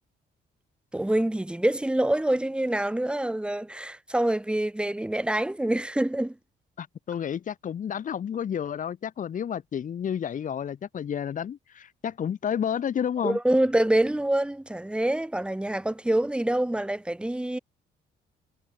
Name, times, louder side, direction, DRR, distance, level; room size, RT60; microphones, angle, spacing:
voice 1, 0.9-6.3 13.2-17.6, right 1 dB, 5° right, 0.7 m, -26 dB
voice 2, 6.8-13.4, left 8 dB, 40° left, 0.6 m, -31 dB
cardioid pair, 90°, 20 cm